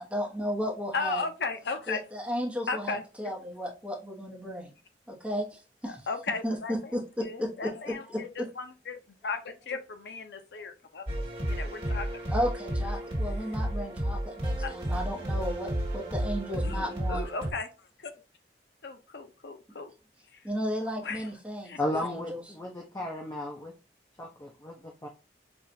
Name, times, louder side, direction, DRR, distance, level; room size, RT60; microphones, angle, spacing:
voice 1, 0.0-1.2 1.9-4.7 5.1-6.0 6.4-8.5 12.3-17.2 20.4-22.4, equal, 5° right, -1 dB, 0.9 m, -34 dB
voice 2, 0.9-2.0 2.7-3.3 5.8-11.1 11.5-12.1 12.3-12.4 14.6-14.8 16.6-18.1 18.8-19.9 20.3-20.4 21.0-21.3 21.6-22.1, left 4 dB, 65° left, 8 dB, 0.6 m, -36 dB
sound 1, 11.1-17.5, equal, 35° right, 1.8 m, -32 dB
voice 3, 21.8-23.7 24.2-25.1, left 1 dB, 20° left, 1 dB, 0.5 m, -34 dB
5.6 x 2.4 x 2.6 m, 0.32 s
head